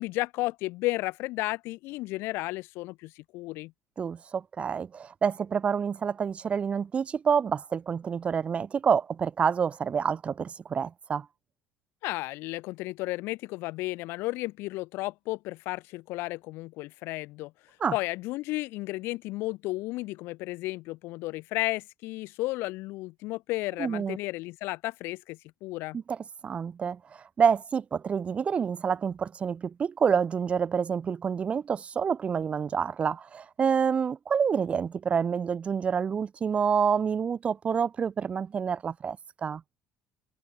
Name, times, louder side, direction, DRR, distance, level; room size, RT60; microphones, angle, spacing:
voice 1, 0.0-3.7 12.0-17.5 17.9-26.0, left 20 dB, 70° left, 6.3 m, -33 dB
voice 2, 4.0-11.3 17.8-17.9 23.8-24.2 25.9-26.2 26.4-39.6, right 6 dB, 30° right, 1.1 m, -28 dB
cardioid pair, 120°, 4 cm